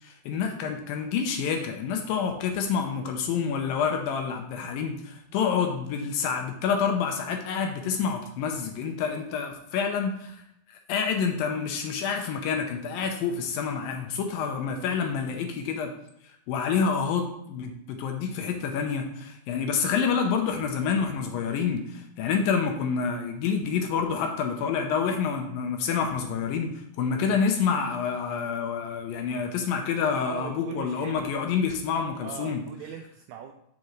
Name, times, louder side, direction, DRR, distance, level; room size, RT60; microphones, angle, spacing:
voice 1, 0.0-10.4 10.7-15.9 16.5-32.6, left 6 dB, 75° left, 4 dB, 2.3 m, -28 dB
voice 2, 30.2-31.3 32.2-33.5, right 8 dB, 85° right, 5 dB, 2.0 m, -39 dB
7.7 x 7.2 x 3.1 m, 0.75 s
omnidirectional pair, 4.5 m